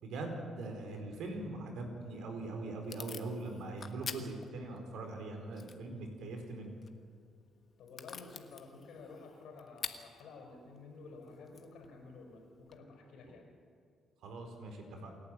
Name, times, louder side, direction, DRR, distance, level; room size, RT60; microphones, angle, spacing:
voice 1, 0.0-6.7 14.2-15.1, right 2 dB, 80° right, 4 dB, 4.4 m, -41 dB
Packing tape duct tape / Tearing, 2.0-12.8, left 6 dB, 45° left, 1.5 m, -50 dB
voice 2, 7.8-13.5, left 3 dB, 80° left, 0 dB, 5.3 m, -52 dB
28.0 x 11.5 x 9.1 m, 2.3 s
cardioid pair, 90°, 0 cm